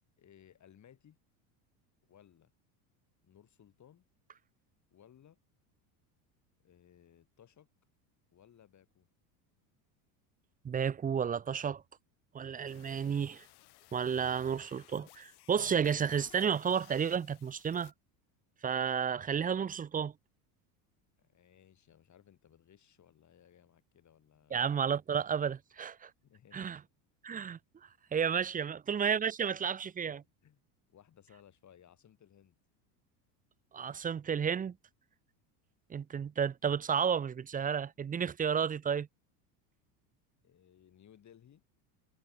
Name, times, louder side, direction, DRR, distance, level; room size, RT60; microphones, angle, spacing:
voice 1, 0.2-1.2 2.1-2.5 3.2-4.0 4.9-5.4 6.6-7.7 8.3-9.1 21.2-24.6 26.2-26.8 30.1-30.2 30.4-30.6 30.9-32.6 40.4-41.6, left 9 dB, 35° left, 7.8 m, -61 dB
voice 2, 10.6-11.8 12.3-13.5 13.9-17.9 18.6-20.1 24.5-26.1 26.5-26.8 27.2-27.6 28.1-30.2 33.7-34.8 35.9-39.1, right 7 dB, 20° right, 0.6 m, -32 dB
sound 1, 12.7-17.9, left 19 dB, 55° left, 2.6 m, -58 dB
supercardioid pair, 110°, 47 cm